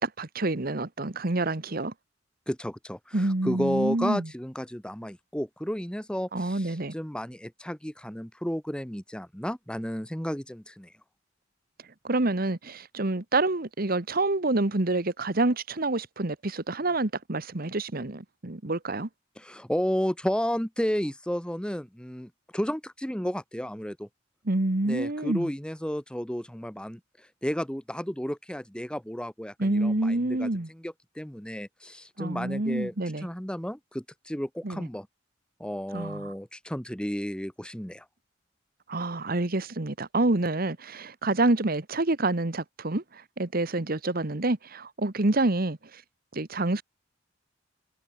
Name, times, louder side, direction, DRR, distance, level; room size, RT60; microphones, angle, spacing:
voice 1, 0.0-1.9 3.1-4.3 6.3-6.9 12.0-19.1 24.4-25.5 29.6-30.7 32.2-33.3 34.6-34.9 35.9-36.3 38.9-46.0 46.3-46.8, right 2 dB, 50° right, 1.4 m, -27 dB
voice 2, 2.5-10.9 19.4-24.1 24.9-32.9 33.2-35.1 35.6-38.1, equal, 5° left, 1.3 m, -32 dB
head